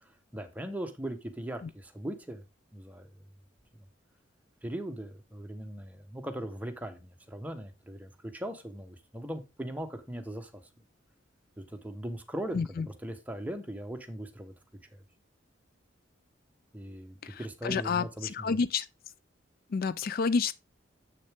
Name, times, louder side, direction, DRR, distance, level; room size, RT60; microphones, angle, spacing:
voice 1, 0.3-2.4 2.7-3.1 4.6-10.6 11.6-14.5 16.7-18.6, right 1 dB, 10° right, 1.1 m, -39 dB
voice 2, 12.5-12.9 17.2-18.9 19.7-20.5, left 5 dB, 50° left, 0.4 m, -29 dB
7.5 x 6.5 x 3.5 m
head